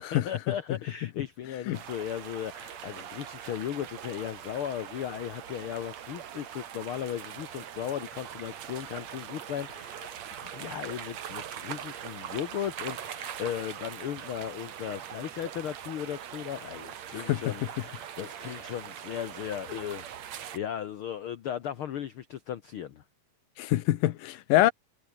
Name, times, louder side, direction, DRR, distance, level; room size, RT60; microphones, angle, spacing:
voice 1, 0.0-23.0, left 10 dB, 70° left, 1.3 m, -36 dB
sound 1, 1.7-20.6, right 9 dB, 55° right, 2.7 m, -42 dB
voice 2, 17.2-17.5 23.6-24.7, left 15 dB, 85° left, 2.8 m, -25 dB
omnidirectional pair, 3.8 m